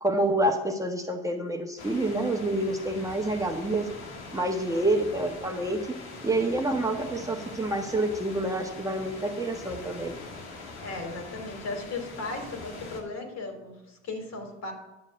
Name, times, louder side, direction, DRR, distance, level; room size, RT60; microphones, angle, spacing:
voice 1, 0.0-3.9 4.3-5.8 6.2-10.1, right 1 dB, 10° right, 2 dB, 1.4 m, -27 dB
sound 1, 1.8-13.0, left 3 dB, 90° left, 2.2 m, -43 dB
voice 2, 10.8-14.7, left 3 dB, 50° left, 4 dB, 3.2 m, -36 dB
10.5 x 7.3 x 6.4 m, 0.99 s
hypercardioid pair, 75°, 32 cm